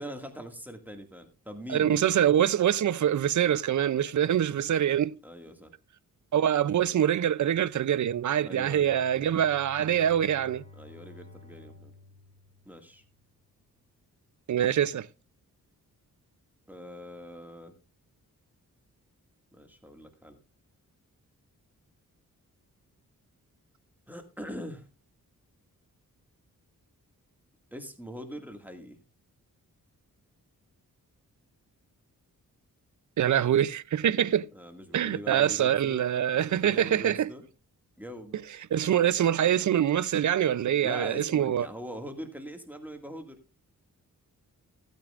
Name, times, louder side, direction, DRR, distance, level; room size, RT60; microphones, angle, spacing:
voice 1, 0.0-2.0 5.2-5.7 8.4-8.9 10.7-11.9 12.7-13.0 16.7-17.7 19.5-20.4 24.1-24.8 27.7-29.0 34.5-36.1 36.3-37.5 38.0-38.4 40.8-43.4, equal, 5° right, 2.0 m, -42 dB
voice 2, 1.7-5.2 6.3-10.6 14.5-15.1 33.2-34.5 34.9-37.3 38.7-41.7, right 10 dB, 60° right, 0.5 m, -25 dB
Bowed string instrument, 8.4-13.3, left 3 dB, 15° left, 3.6 m, -52 dB
15.5 x 9.2 x 2.5 m
cardioid pair, 80°, 34 cm